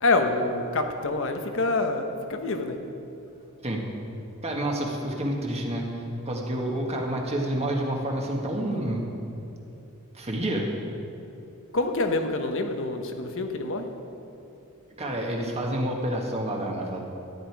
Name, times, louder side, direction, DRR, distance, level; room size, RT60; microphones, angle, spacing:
voice 1, 0.0-2.8 11.7-13.9, left 2 dB, 60° left, 6 dB, 1.0 m, -26 dB
voice 2, 4.4-9.0 10.1-10.7 15.0-17.0, right 1 dB, 30° right, 0 dB, 1.5 m, -29 dB
14.0 x 10.0 x 4.7 m, 2.8 s
head